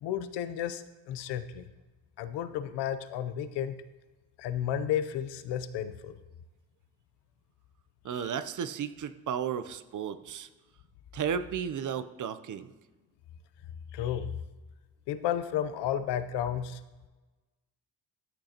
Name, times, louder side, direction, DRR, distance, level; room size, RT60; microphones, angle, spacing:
voice 1, 0.0-1.6 2.2-3.8 4.4-6.1 8.1-8.3 13.9-14.3 15.1-16.8, left 10 dB, 80° left, 12 dB, 0.7 m, -32 dB
voice 2, 8.0-10.5 11.1-12.7, right 8 dB, 50° right, 12 dB, 0.6 m, -34 dB
13.5 x 6.4 x 2.9 m, 1.2 s
cardioid pair, 80°, 40 cm